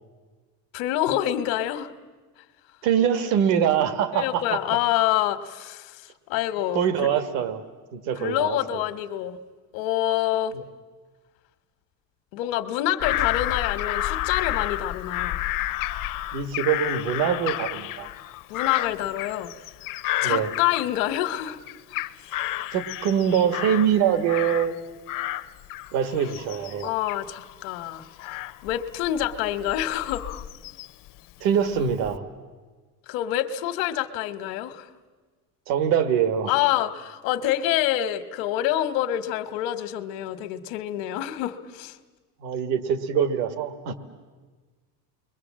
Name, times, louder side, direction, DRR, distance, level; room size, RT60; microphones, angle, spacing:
voice 1, 0.7-1.9 4.1-6.8 8.2-9.4 9.7-10.6 12.3-15.4 18.5-19.5 20.2-21.6 21.9-22.0 26.8-28.0 28.6-30.2 33.1-34.9 36.5-42.0, left 13 dB, 80° left, 11 dB, 1.4 m, -26 dB
voice 2, 2.8-4.6 6.7-7.6 7.9-8.8 10.5-10.6 16.3-18.1 20.2-20.5 22.7-24.8 25.9-26.9 31.4-32.3 35.7-36.5 42.4-43.9, right 8 dB, 80° right, 10 dB, 1.8 m, -24 dB
Bird vocalization bird call bird song / Crow, 13.0-21.3 21.7-24.8 25.1-31.1 31.6-32.2, left 14 dB, 50° left, 0.7 m, -31 dB
29.5 x 22.5 x 7.5 m, 1.4 s
cardioid pair, 150°, 42 cm